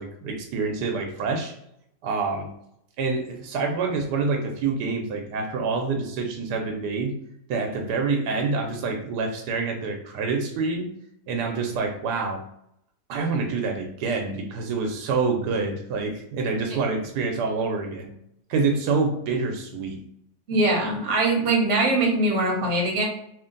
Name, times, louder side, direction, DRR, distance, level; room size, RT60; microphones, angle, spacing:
voice 1, 0.0-1.5 2.0-2.5 3.0-7.1 7.5-10.9 11.3-12.4 13.1-18.1 18.5-20.0, right 4 dB, 85° right, 3 dB, 1.2 m, -27 dB
voice 2, 20.5-23.0, right 2 dB, 50° right, -1 dB, 1.0 m, -22 dB
3.1 x 2.5 x 3.8 m, 0.76 s
omnidirectional pair, 1.7 m